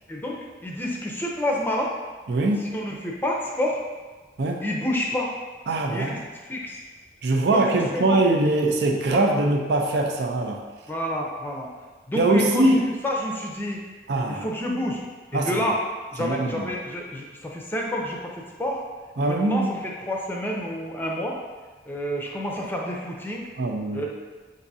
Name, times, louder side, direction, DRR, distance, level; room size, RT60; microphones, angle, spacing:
voice 1, 0.1-1.9 2.6-3.8 4.6-5.3 5.9-6.8 7.5-7.6 7.9-8.6 9.1-9.4 10.9-11.7 12.1-13.8 14.3-15.0 15.3-15.8 16.1-18.8 19.2-21.4 21.9-23.4 23.9-24.1, left 1 dB, 10° left, -1 dB, 0.5 m, -29 dB
voice 2, 2.3-2.6 4.4-4.6 5.7-6.2 7.2-10.6 12.2-12.8 14.1-14.4 15.3-15.7 16.2-16.6 19.2-19.7 23.6-24.1, right 2 dB, 70° right, 2 dB, 0.5 m, -22 dB
7.1 x 2.6 x 2.7 m, 1.3 s
head